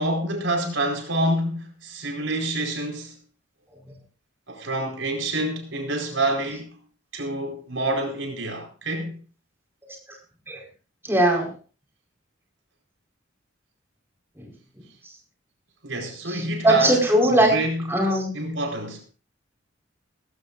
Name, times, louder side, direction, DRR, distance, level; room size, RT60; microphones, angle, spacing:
voice 1, 0.0-3.2 4.5-6.7 7.1-9.2 15.8-17.0 17.3-17.8 18.3-19.1, right 1 dB, 80° right, 4.6 m, -27 dB
voice 2, 11.1-11.5 14.4-14.5 16.3-17.5 17.9-18.3, right 1 dB, 10° right, 4.5 m, -20 dB
19.5 x 16.0 x 2.6 m
head